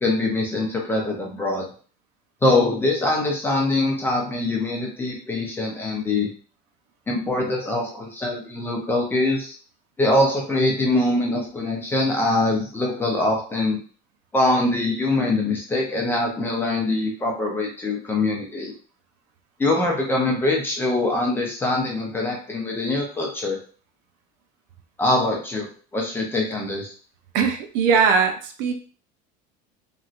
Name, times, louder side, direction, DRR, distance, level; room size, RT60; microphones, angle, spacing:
voice 1, 0.0-1.7 2.4-6.3 7.1-9.5 10.0-13.8 14.3-18.7 19.6-23.6 25.0-26.9, left 2 dB, 10° left, -1 dB, 0.5 m, -23 dB
voice 2, 27.3-28.7, right 6 dB, 70° right, 5 dB, 0.6 m, -20 dB
3.0 x 2.6 x 2.5 m, 0.40 s
cardioid pair, 170°, 21 cm